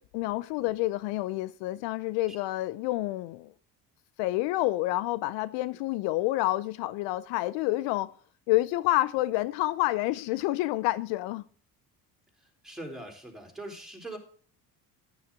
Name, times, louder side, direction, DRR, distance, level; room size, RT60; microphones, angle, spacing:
voice 1, 0.1-3.5 4.2-8.1 8.5-11.4, left 17 dB, 70° left, 0.6 m, -28 dB
voice 2, 12.6-14.2, right 1 dB, ahead, 4.1 m, -41 dB
11.0 x 9.7 x 3.7 m
supercardioid pair, 70°, 44 cm